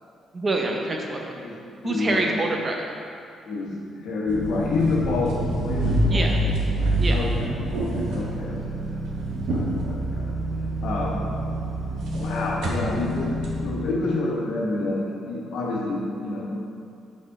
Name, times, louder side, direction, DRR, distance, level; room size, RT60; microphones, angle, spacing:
voice 1, 0.3-1.4 1.8-2.9 6.1-6.4 7.0-7.2, right 2 dB, 35° right, 1 dB, 0.8 m, -26 dB
voice 2, 1.4-2.3 3.4-6.3 7.1-8.9 9.5-10.3 10.8-11.2 12.2-13.3 13.6-16.5, left 3 dB, 80° left, -3 dB, 1.3 m, -28 dB
sound 1, 4.3-13.6, right 1 dB, 85° right, 1.2 m, -26 dB
6.1 x 4.3 x 4.7 m, 2.4 s
cardioid pair, 90°, 0 cm